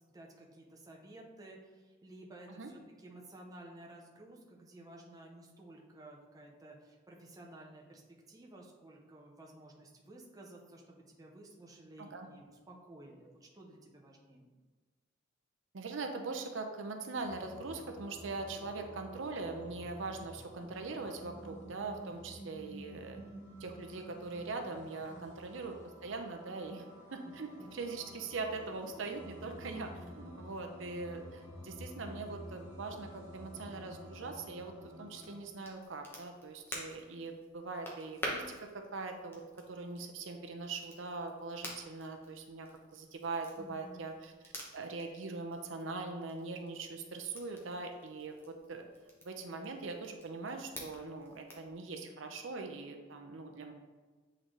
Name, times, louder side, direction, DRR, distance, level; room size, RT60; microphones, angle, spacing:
voice 1, 0.1-8.0 8.3-14.5 25.1-25.3 27.2-27.7 43.6-44.1, right 1 dB, 20° right, -1 dB, 0.7 m, -54 dB
voice 2, 12.0-12.3 15.7-23.2 23.6-25.8 26.0-26.9 27.1-39.4 39.7-44.3 44.7-48.9 49.2-53.7, right 3 dB, 70° right, 4 dB, 0.6 m, -42 dB
sound 1, 17.1-35.4, equal, 35° left, 1.2 m, -51 dB
Crackle, 35.1-51.7, equal, 10° left, 0.9 m, -49 dB
8.0 x 3.8 x 3.2 m, 1.3 s
head